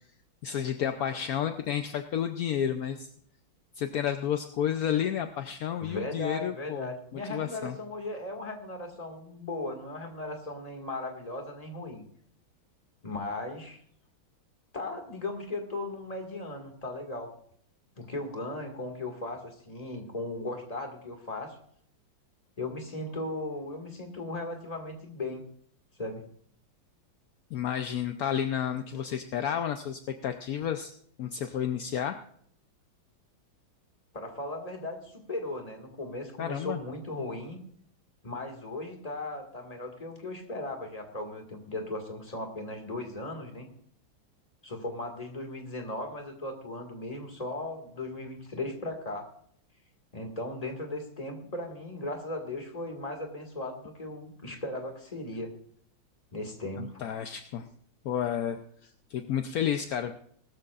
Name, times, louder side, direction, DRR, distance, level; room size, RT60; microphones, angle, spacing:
voice 1, 0.4-3.1 3.7-6.9 7.3-7.8 27.5-30.9 31.2-32.2 36.4-36.8 56.8-57.7 58.0-60.2, left 9 dB, 65° left, 7 dB, 0.9 m, -31 dB
voice 2, 5.8-12.0 13.0-13.8 14.7-17.3 18.0-21.6 22.6-25.4 26.0-26.2 34.1-37.6 38.2-43.7 44.6-49.3 50.1-55.5 56.3-57.0, left 2 dB, 20° left, 3 dB, 1.9 m, -37 dB
19.5 x 13.5 x 2.5 m, 0.62 s
omnidirectional pair, 2.2 m